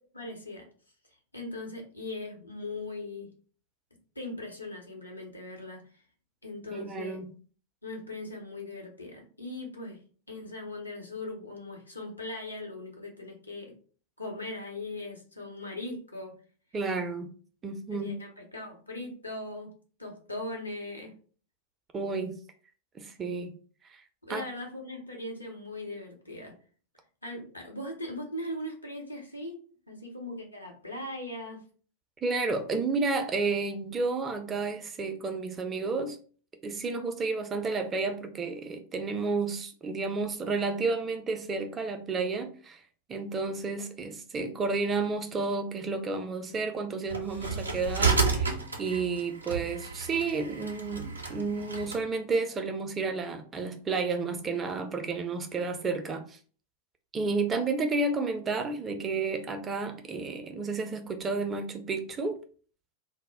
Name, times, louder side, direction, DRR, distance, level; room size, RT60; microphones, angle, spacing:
voice 1, 0.1-0.7 1.3-3.3 4.2-5.8 6.4-7.2 7.8-10.0 10.3-13.7 14.2-16.3 17.9-19.7 20.0-21.1 24.2-26.5 27.2-29.6 29.9-31.6, left 2 dB, 85° left, 0.7 m, -39 dB
voice 2, 6.7-7.3 16.7-17.3 17.6-18.1 21.9-22.4 22.9-23.5 23.9-24.0 24.3-24.4 32.2-36.2 36.6-42.8 43.1-56.4 57.1-62.4, right 4 dB, 20° right, 0.4 m, -31 dB
sound 1, 47.1-52.0, right 4 dB, 80° right, 0.5 m, -31 dB
2.0 x 2.0 x 3.3 m
figure-of-eight pair, 90°, 0 cm